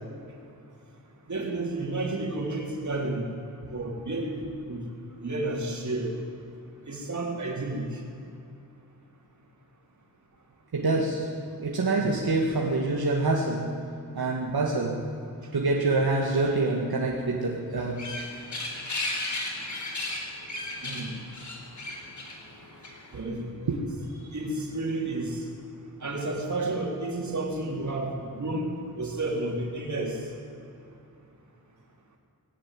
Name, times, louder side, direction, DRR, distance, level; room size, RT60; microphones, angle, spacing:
voice 1, 1.3-3.2 3.7-4.8 5.2-6.1 6.9-7.9 19.6-19.7 20.8-21.1 23.1-23.7 24.3-25.4 26.0-28.7 29.0-30.2, right 2 dB, 45° right, 0 dB, 3.8 m, -31 dB
voice 2, 10.7-11.3 11.6-13.7 14.2-15.0 15.5-18.0 23.7-23.8 24.1-24.2, right 3 dB, 70° right, -2 dB, 2.2 m, -26 dB
sound 1, 17.8-23.2, left 2 dB, 45° left, 4.0 m, -35 dB
19.0 x 17.5 x 9.3 m, 2.6 s
wide cardioid pair, 135°, 39 cm